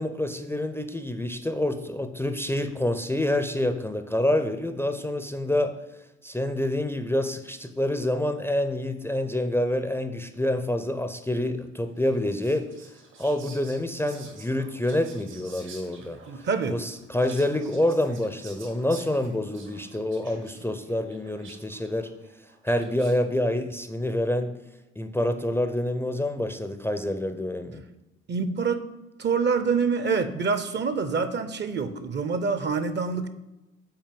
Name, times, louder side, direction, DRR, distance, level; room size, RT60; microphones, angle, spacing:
voice 1, 0.0-5.7 6.2-12.7 13.2-16.2 16.7-22.1 22.6-24.5 25.0-27.8, left 1 dB, 5° left, 8 dB, 0.5 m, -27 dB
Whispering, 12.0-23.3, right 4 dB, 70° right, 1.5 m, -50 dB
voice 2, 16.3-16.8 28.3-28.8 29.2-33.3, right 5 dB, 35° right, 11 dB, 0.6 m, -26 dB
5.7 x 4.2 x 5.3 m, 0.99 s
hypercardioid pair, 50°, 32 cm